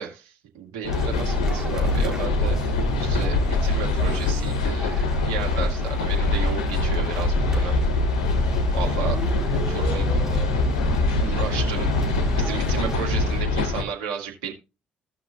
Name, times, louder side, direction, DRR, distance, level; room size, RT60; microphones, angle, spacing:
voice 1, 0.0-7.7 8.7-9.2 9.5-10.1 11.1-14.5, right 7 dB, 75° right, 0 dB, 2.3 m, -34 dB
sound 1, 0.8-13.8, left 2 dB, 85° left, 1.0 m, -23 dB
sound 2, 0.9-13.4, right 1 dB, 10° right, 4.3 m, -33 dB
16.5 x 6.0 x 2.5 m, 0.28 s
hypercardioid pair, 45°, 4 cm